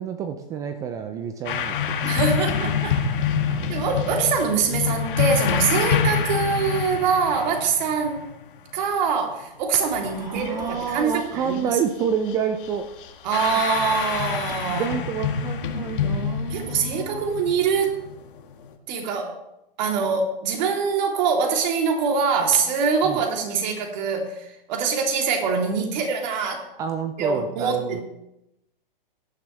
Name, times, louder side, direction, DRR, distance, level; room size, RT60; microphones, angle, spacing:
voice 1, 0.0-2.2 3.1-4.3 6.0-6.1 10.0-12.9 14.7-17.2 23.0-23.2 26.8-28.0, right 7 dB, 10° right, 9 dB, 0.3 m, -29 dB
sound 1, 1.4-8.7 9.4-9.5 9.9-11.6 12.0-12.3 12.6-18.7, left 7 dB, 60° left, 1.8 m, -27 dB
voice 2, 2.0-3.0 3.7-8.2 8.7-11.6 13.2-14.9 16.5-18.0 18.9-19.4 19.8-26.7 27.2-28.0, right 5 dB, 50° right, 2 dB, 3.0 m, -24 dB
17.5 x 10.5 x 3.2 m, 0.86 s
hypercardioid pair, 135°, 29 cm